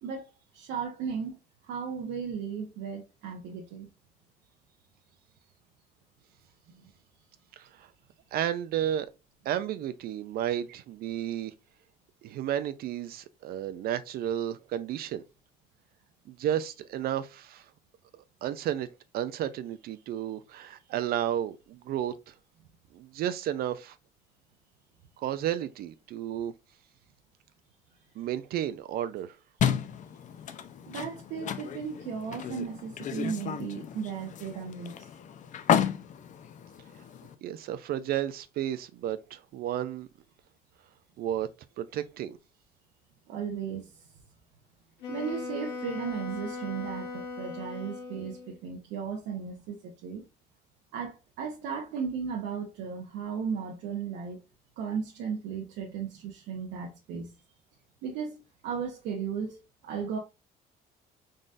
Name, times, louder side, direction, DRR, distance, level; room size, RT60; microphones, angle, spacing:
voice 1, 0.0-3.9 6.7-6.8 30.9-35.1 43.3-44.0 45.1-50.2 50.9-54.4 54.8-57.3 58.0-60.2, right 6 dB, 90° right, 0.9 m, -36 dB
voice 2, 7.5-7.9 8.3-9.1 9.5-11.5 12.2-15.2 16.3-17.7 18.1-18.9 19.1-22.3 22.9-24.0 25.2-26.5 28.2-29.4 37.4-40.1 41.2-41.5 41.8-42.4, right 11 dB, 65° right, 0.4 m, -32 dB
sound 1, 29.6-37.3, left 8 dB, 45° left, 0.5 m, -32 dB
Wind instrument woodwind instrument, 45.0-48.6, left 4 dB, 85° left, 1.7 m, -38 dB
3.9 x 3.7 x 2.5 m
cardioid pair, 110°, 17 cm